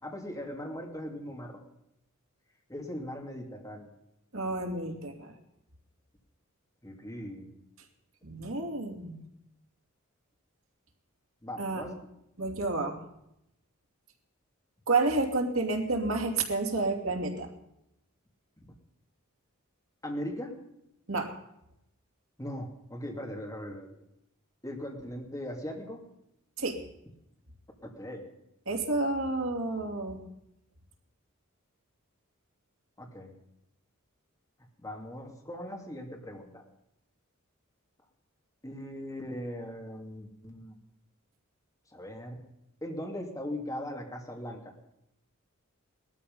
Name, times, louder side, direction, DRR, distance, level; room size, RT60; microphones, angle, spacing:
voice 1, 0.0-1.6 2.7-3.9 6.8-7.5 11.4-11.9 20.0-20.5 22.4-23.9 24.6-26.0 27.8-28.3 33.0-33.3 34.8-36.6 38.6-40.8 41.9-42.4 42.8-44.7, left 1 dB, 15° left, 1 dB, 2.8 m, -39 dB
voice 2, 4.3-5.3 8.2-9.2 11.6-11.9 12.4-13.0 14.9-17.5 21.1-21.3 26.6-26.8 28.7-30.2, right 3 dB, 75° right, 2 dB, 2.8 m, -30 dB
18.5 x 13.0 x 5.5 m, 0.81 s
head